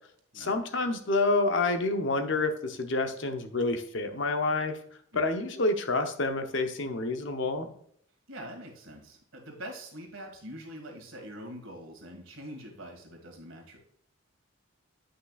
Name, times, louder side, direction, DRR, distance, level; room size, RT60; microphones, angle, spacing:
voice 1, 0.3-4.8 5.1-7.7, left 2 dB, 60° left, 7 dB, 0.8 m, -28 dB
voice 2, 8.3-13.8, equal, 70° right, 2 dB, 1.9 m, -44 dB
8.7 x 5.7 x 2.4 m, 0.66 s
head